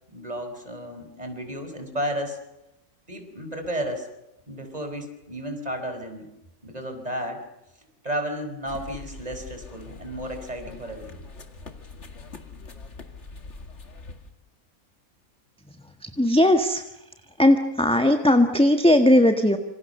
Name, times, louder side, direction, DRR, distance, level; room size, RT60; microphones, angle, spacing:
voice 1, 0.1-2.4 3.1-4.1 4.5-6.3 6.6-7.4 8.0-11.2, equal, 25° right, 6 dB, 4.8 m, -33 dB
sound 1, 8.7-14.3, left 3 dB, 50° left, 2.4 m, -43 dB
voice 2, 15.7-16.8 17.4-19.6, left 1 dB, 5° left, 7 dB, 1.4 m, -19 dB
27.0 x 26.5 x 6.7 m, 0.88 s
omnidirectional pair, 1.6 m